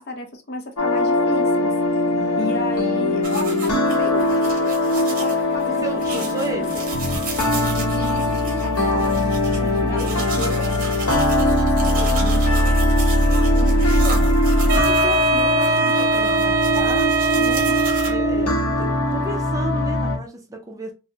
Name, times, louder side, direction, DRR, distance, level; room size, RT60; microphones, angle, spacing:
voice 1, 0.0-1.7 2.4-6.3 6.6-6.9 7.8-9.4 9.9-12.4, left 1 dB, 45° left, 0.6 m, -34 dB
sound 1, 0.8-20.2, left 1 dB, 85° left, 0.8 m, -20 dB
voice 2, 2.1-2.8 3.2-3.7 5.1-5.3 5.6-6.8 9.6-10.6 13.2-14.4 14.7-20.9, right 2 dB, 15° right, 0.4 m, -34 dB
sound 2, 3.2-18.1, right 3 dB, 40° right, 0.9 m, -34 dB
Wind instrument woodwind instrument, 14.7-18.6, right 3 dB, 60° right, 0.6 m, -21 dB
3.3 x 2.0 x 2.7 m
head